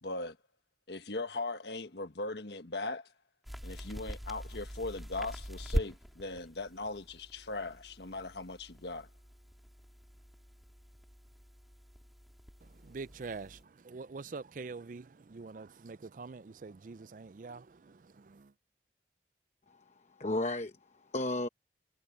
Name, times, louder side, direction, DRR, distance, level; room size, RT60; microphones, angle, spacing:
voice 1, 0.0-0.4 0.9-3.1 3.6-9.1, left 2 dB, 70° left, 1.4 m, -39 dB
sound 1, 3.4-13.6, equal, ahead, 2.8 m, -42 dB
voice 2, 12.8-18.5, right 4 dB, 45° right, 0.4 m, -45 dB
voice 3, 19.7-21.5, left 2 dB, 40° left, 0.9 m, -35 dB
head